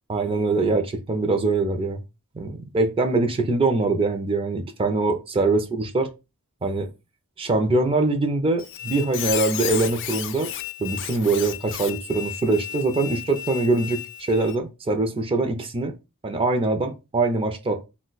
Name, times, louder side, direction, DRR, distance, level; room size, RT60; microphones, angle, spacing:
voice 1, 0.1-2.0 2.3-6.1 6.6-6.9 7.4-10.5 10.8-15.9 16.2-17.9, right 3 dB, 25° right, 0.4 m, -23 dB
Squeak, 8.6-14.6, left 12 dB, 55° left, 0.4 m, -33 dB
2.3 x 2.2 x 3.8 m
head